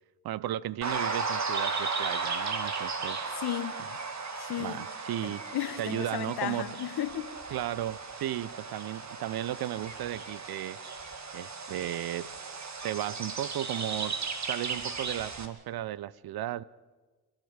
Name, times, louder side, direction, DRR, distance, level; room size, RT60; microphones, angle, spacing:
voice 1, 0.2-3.2 4.6-5.5 5.8-6.7 7.5-10.8 11.3-12.3 12.8-16.6, right 13 dB, 60° right, 0.7 m, -35 dB
sound 1, 0.8-15.5, right 4 dB, 40° right, 2.3 m, -36 dB
voice 2, 3.3-3.9 4.4-4.8 5.2-7.4, left 12 dB, 60° left, 1.3 m, -34 dB
28.5 x 12.0 x 8.0 m
hypercardioid pair, 55°, 42 cm